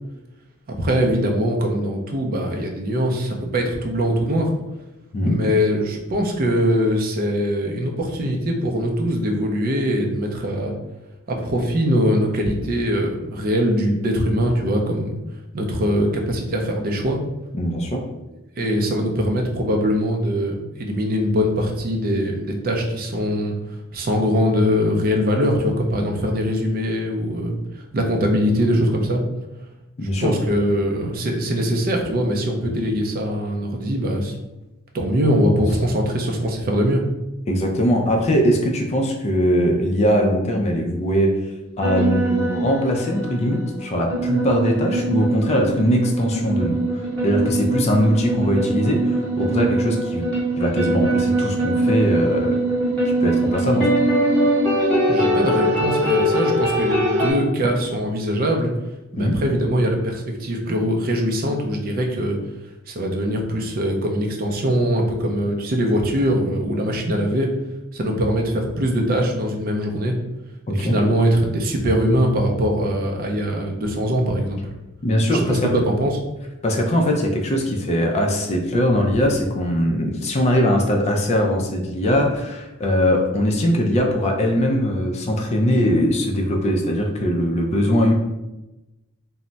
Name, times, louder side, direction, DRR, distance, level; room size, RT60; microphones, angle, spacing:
voice 1, 0.7-4.5 5.2-10.7 11.3-15.2 15.5-17.2 18.6-23.5 23.9-27.6 27.9-29.2 30.2-34.3 34.9-37.0 55.1-58.7 59.1-62.4 62.9-67.5 67.9-70.2 70.7-74.7 75.3-75.6 75.9-76.1, equal, 40° right, 2 dB, 0.4 m, -22 dB
voice 2, 17.6-18.0 30.0-30.4 37.5-41.3 41.8-50.3 50.6-52.6 53.2-53.9 59.1-59.4 70.7-71.0 75.0-75.7 76.6-88.1, equal, 30° left, 2 dB, 0.3 m, -21 dB
sound 1, 41.8-57.3, right 1 dB, 5° left, 0.8 m, -22 dB
2.2 x 2.0 x 3.8 m, 1.0 s
head